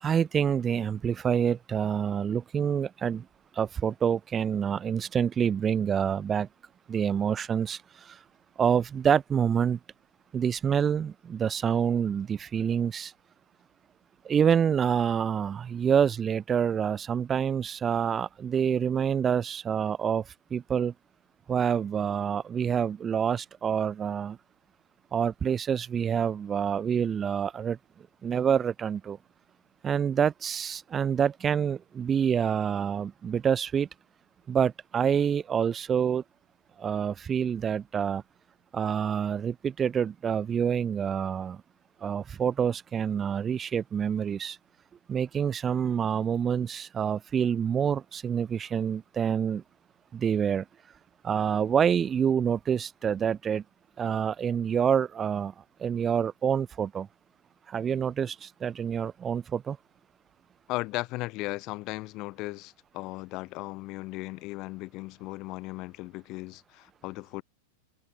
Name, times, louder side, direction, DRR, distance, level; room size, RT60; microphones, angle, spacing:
voice 1, 0.0-3.3 3.5-6.5 6.9-8.2 8.6-9.8 10.3-13.1 14.2-20.9 21.5-24.4 25.1-27.8 28.2-29.2 29.8-33.9 34.5-36.2 36.8-38.2 38.7-41.6 42.0-44.6 45.1-49.6 50.1-50.6 51.2-53.6 54.0-55.5 55.8-57.1 57.7-59.8, right 7 dB, 20° right, 0.6 m, -27 dB
voice 2, 60.7-67.4, left 21 dB, 40° left, 2.9 m, -36 dB
figure-of-eight pair, 90°, 0 cm